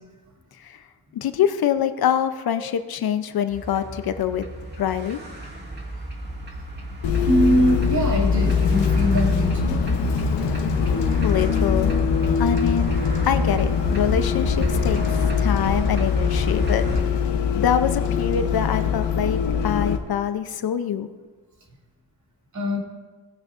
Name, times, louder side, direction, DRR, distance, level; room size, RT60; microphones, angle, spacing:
voice 1, 1.1-4.4 4.8-5.2 10.5-10.8 11.2-13.0 13.2-16.9 17.5-21.1, left 9 dB, 60° left, 10 dB, 0.7 m, -25 dB
sound 1, 3.5-17.0, right 2 dB, 25° right, 2.0 m, -30 dB
Bus, 7.0-20.0, left 7 dB, 90° left, 1.1 m, -22 dB
voice 2, 7.3-9.8 22.5-22.8, equal, 45° right, -1 dB, 2.7 m, -22 dB
19.0 x 8.8 x 2.6 m, 1.3 s
cardioid pair, 95°, 41 cm